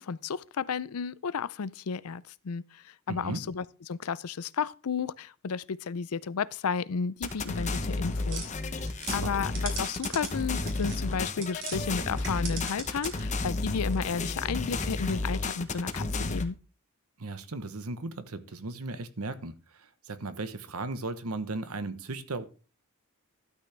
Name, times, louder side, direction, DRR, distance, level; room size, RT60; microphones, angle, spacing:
voice 1, 0.0-8.5 9.1-16.6, left 6 dB, 85° left, 0.5 m, -33 dB
voice 2, 3.1-3.4 9.2-9.3 17.2-22.5, right 2 dB, 80° right, 1.0 m, -36 dB
sound 1, 7.2-16.5, left 3 dB, 35° left, 0.9 m, -32 dB
sound 2, 8.3-11.8 12.1-13.4, right 5 dB, 60° right, 3.4 m, -41 dB
12.5 x 8.4 x 3.4 m
head